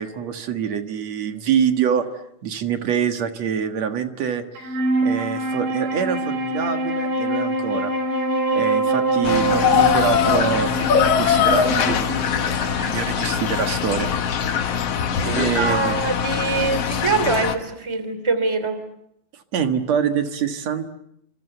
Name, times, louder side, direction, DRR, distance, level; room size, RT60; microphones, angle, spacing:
voice 1, 0.0-2.1 2.4-4.7 5.0-7.9 8.5-14.1 15.1-16.0 19.5-20.9, right 7 dB, 55° right, 7 dB, 2.6 m, -25 dB
Wind instrument woodwind instrument, 4.6-14.1, right 1 dB, 75° right, 5.6 m, -25 dB
sound 1, 9.2-17.6, left 8 dB, 55° left, 2.2 m, -22 dB
voice 2, 15.6-18.8, right 4 dB, 10° right, 11 dB, 2.5 m, -23 dB
28.5 x 26.0 x 8.0 m, 0.76 s
omnidirectional pair, 4.0 m